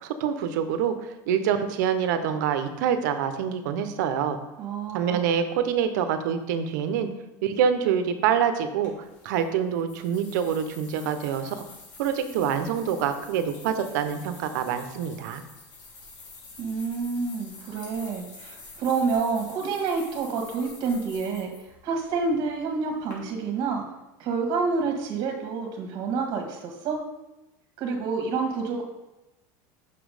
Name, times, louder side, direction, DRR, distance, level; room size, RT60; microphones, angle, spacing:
voice 1, 0.0-4.4 4.9-7.1 7.4-8.9 9.2-11.6 12.0-15.4, right 8 dB, 75° right, 9 dB, 0.9 m, -26 dB
voice 2, 4.6-5.3 16.6-21.5 21.8-23.8 24.2-27.0 27.8-28.8, right 4 dB, 50° right, 3 dB, 1.6 m, -28 dB
sound 1, 8.8-23.1, left 3 dB, 85° left, 2.9 m, -48 dB
6.2 x 5.9 x 4.9 m, 0.99 s
supercardioid pair, 135°, 10 cm